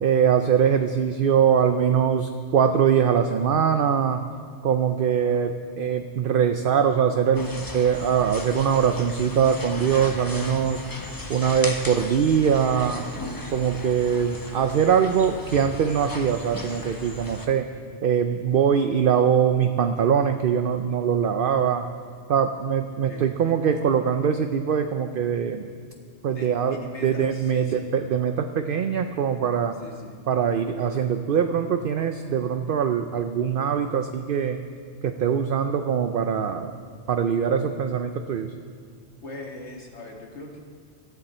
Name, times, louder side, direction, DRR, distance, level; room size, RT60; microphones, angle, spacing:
voice 1, 0.0-4.2 4.6-10.8 11.3-13.0 13.5-17.7 18.0-21.8 22.3-25.7 26.2-29.7 30.3-34.6 35.0-36.7 37.1-38.5, right 7 dB, 55° right, 7 dB, 0.7 m, -22 dB
sound 1, 7.3-17.5, left 1 dB, 20° left, 1.0 m, -36 dB
voice 2, 22.8-23.6 26.3-27.9 29.8-30.2 39.2-40.6, left 1 dB, 70° left, 0 dB, 2.1 m, -40 dB
18.5 x 13.0 x 4.4 m, 2.1 s
omnidirectional pair, 1.2 m